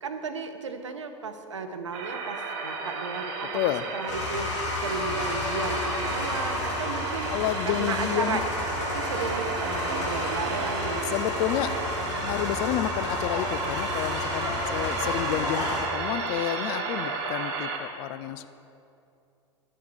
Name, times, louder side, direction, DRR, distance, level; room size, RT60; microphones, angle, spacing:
voice 1, 0.0-3.6 3.9-7.3 7.6-8.4 8.9-11.2, right 4 dB, 75° right, 8 dB, 0.7 m, -34 dB
sound 1, 1.9-17.8, right 4 dB, 55° right, 1.2 m, -33 dB
voice 2, 3.5-3.8 7.3-8.4 11.1-11.7 12.2-18.5, left 13 dB, 45° left, 13 dB, 0.4 m, -30 dB
sound 2, 4.1-15.8, left 2 dB, 70° left, 1.9 m, -31 dB
11.0 x 6.9 x 4.9 m, 2.6 s
figure-of-eight pair, 80°, 16 cm